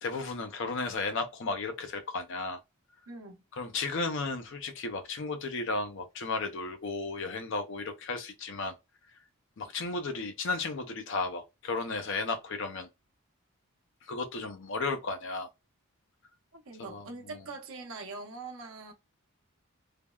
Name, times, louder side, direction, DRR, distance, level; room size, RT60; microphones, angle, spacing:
voice 1, 0.0-2.6 3.6-8.7 9.6-12.9 14.0-15.5 16.8-17.4, left 3 dB, 60° left, 0.5 m, -34 dB
voice 2, 3.1-3.4 16.5-18.9, right 3 dB, 65° right, 0.8 m, -43 dB
3.3 x 2.1 x 2.2 m
head